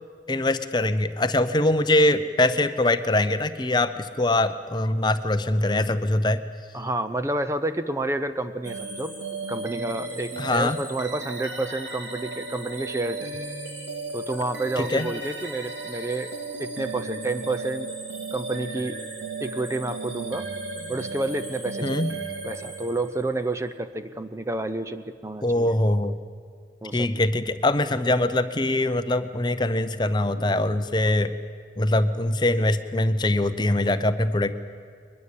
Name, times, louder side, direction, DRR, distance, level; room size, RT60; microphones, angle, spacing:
voice 1, 0.3-6.4 10.4-10.8 14.8-15.1 21.8-22.1 25.4-26.2 26.9-31.3 31.8-34.5, left 1 dB, 25° left, 11 dB, 0.7 m, -23 dB
voice 2, 6.7-9.1 9.5-13.3 14.1-16.3 16.6-17.9 18.3-19.0 19.4-20.5 20.9-22.1 22.4-25.8 26.8-27.1, right 2 dB, 15° right, 11 dB, 0.6 m, -29 dB
sound 1, 8.6-23.4, right 3 dB, 80° right, 2.9 m, -35 dB
22.0 x 21.0 x 8.5 m, 2.2 s
head